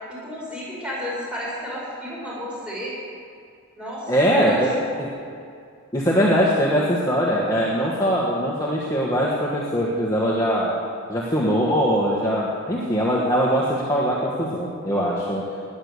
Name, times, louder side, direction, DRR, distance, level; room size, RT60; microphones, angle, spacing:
voice 1, 0.1-2.9 3.8-4.9, equal, 5° right, -6 dB, 5.2 m, -32 dB
voice 2, 4.1-4.7 5.0-5.1 5.9-10.8 11.1-15.4, equal, 15° left, -5 dB, 1.6 m, -21 dB
19.5 x 9.8 x 6.8 m, 2.3 s
head